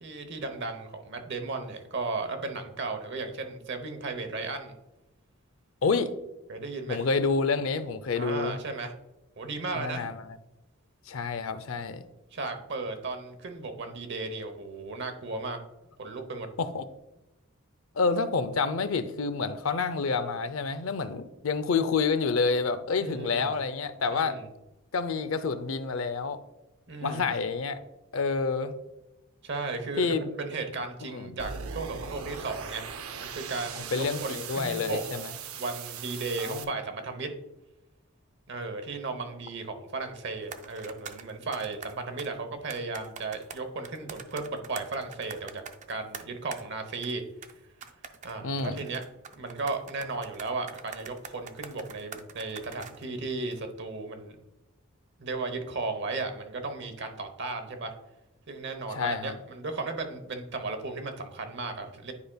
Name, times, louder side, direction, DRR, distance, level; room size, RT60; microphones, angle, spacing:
voice 1, 0.0-4.7 6.5-7.1 8.1-8.9 9.4-10.1 12.3-15.6 16.0-16.5 23.0-23.5 24.1-24.5 26.9-27.3 29.4-32.8 33.2-35.0 35.5-37.3 38.5-45.6 45.9-47.2 48.2-49.0 49.3-54.3 55.2-57.9 58.5-62.1, right 3 dB, 55° right, 6 dB, 0.9 m, -35 dB
voice 2, 5.8-6.1 6.9-8.6 9.7-10.2 11.1-12.0 16.6-16.8 18.0-24.4 24.9-26.4 27.0-27.8 28.1-28.7 30.0-30.2 31.1-31.3 33.9-35.3 36.4-36.7 48.4-48.8 58.9-59.4, left 4 dB, 70° left, 12 dB, 0.5 m, -28 dB
sound 1, 31.4-36.6, right 7 dB, 85° right, 0.6 m, -39 dB
sound 2, 40.4-42.3 42.7-46.6 47.0-47.2 47.4-47.5 47.8-53.1 53.5-53.6, right 6 dB, 35° right, 0.4 m, -45 dB
9.9 x 5.1 x 2.3 m, 0.96 s
head